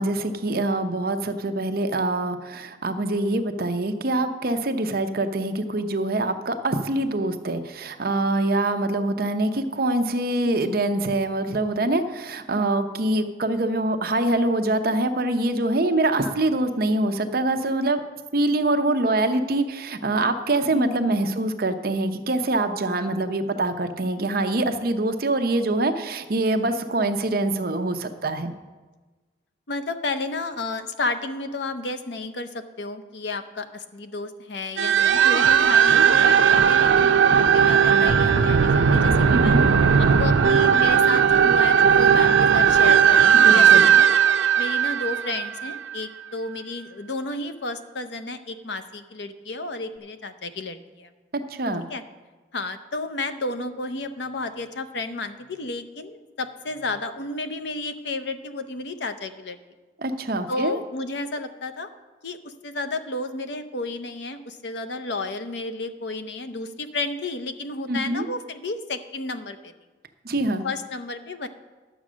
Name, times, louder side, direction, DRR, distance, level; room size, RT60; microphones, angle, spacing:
voice 1, 0.0-18.0 18.3-28.5 39.3-39.7 43.4-43.9 51.3-51.8 60.0-60.8 67.9-68.3 70.2-70.7, right 2 dB, 50° right, 7 dB, 0.7 m, -24 dB
voice 2, 10.4-10.8 16.2-16.3 20.7-21.1 27.3-27.4 29.7-39.6 40.0-44.1 44.6-51.1 51.9-52.0 52.5-59.6 60.5-61.9 62.2-69.7 70.6-71.5, left 2 dB, 65° left, 9 dB, 0.7 m, -32 dB
Sci Fi Growl Scream G, 34.8-46.0, right 7 dB, 85° right, 0.6 m, -17 dB
11.0 x 7.5 x 6.2 m, 1.3 s
head